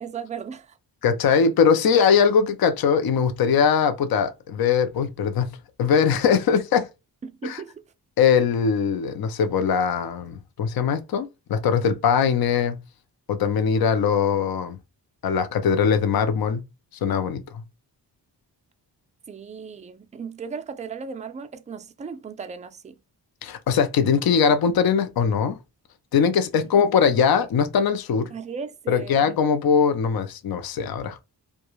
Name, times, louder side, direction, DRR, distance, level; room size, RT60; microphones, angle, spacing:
voice 1, 0.0-0.8 7.2-7.8 19.3-23.0 26.6-26.7 28.3-29.2, right 6 dB, 20° right, 0.3 m, -36 dB
voice 2, 1.0-5.5 5.8-6.9 7.4-7.6 8.2-12.8 13.3-14.8 15.2-16.6 17.0-17.6 23.4-25.6 26.1-28.3 28.9-31.2, left 6 dB, 60° left, 0.5 m, -21 dB
2.4 x 2.2 x 2.9 m
cardioid pair, 60°, 42 cm